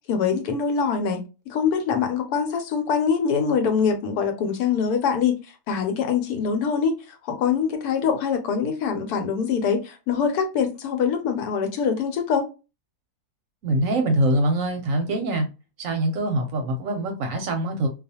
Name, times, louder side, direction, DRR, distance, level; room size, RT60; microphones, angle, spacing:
voice 1, 0.1-5.4 5.7-7.0 7.2-12.5, left 6 dB, 80° left, 1.1 m, -24 dB
voice 2, 13.6-15.5 15.8-17.9, right 1 dB, 65° right, 0.9 m, -24 dB
2.4 x 2.3 x 2.6 m
omnidirectional pair, 1.7 m